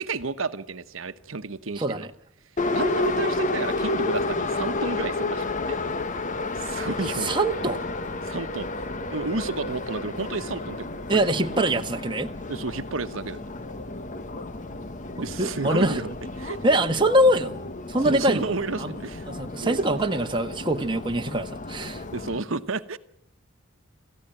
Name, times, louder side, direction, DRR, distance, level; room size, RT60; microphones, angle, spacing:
voice 1, 0.0-2.1 2.7-5.8 6.5-7.4 8.2-8.7 9.1-10.8 11.1-11.2 12.5-13.4 15.2-16.6 18.0-19.3 19.6-20.2 22.1-23.0, right 3 dB, 80° right, 10 dB, 1.1 m, -31 dB
voice 2, 1.8-2.1 7.2-7.8 11.1-12.3 15.2-16.0 16.6-17.6 17.9-18.4 18.8-18.9 19.3-22.0, right 1 dB, 25° right, 5 dB, 1.3 m, -23 dB
Subway metro underground, 2.6-22.4, left 2 dB, 40° left, 1.1 m, -31 dB
27.5 x 15.0 x 8.9 m, 0.79 s
head